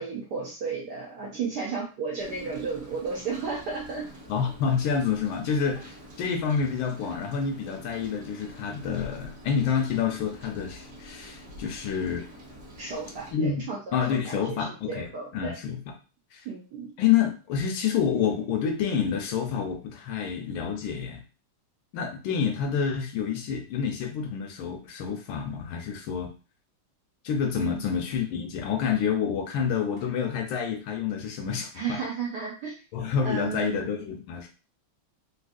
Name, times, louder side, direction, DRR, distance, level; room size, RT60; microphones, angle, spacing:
voice 1, 0.0-4.1 12.8-15.5 16.4-16.9 27.6-27.8 31.7-32.8 33.2-33.9, right 5 dB, 70° right, -3 dB, 1.0 m, -33 dB
Rain, 2.2-13.3, equal, 50° right, 1.1 m, -47 dB
voice 2, 4.3-12.3 13.3-13.6 13.9-15.1 15.3-15.8 16.3-16.4 17.0-21.2 21.9-26.3 27.2-32.0 32.9-34.5, left 7 dB, 75° left, 4 dB, 1.3 m, -28 dB
3.3 x 2.7 x 2.5 m, 0.34 s
omnidirectional pair, 2.4 m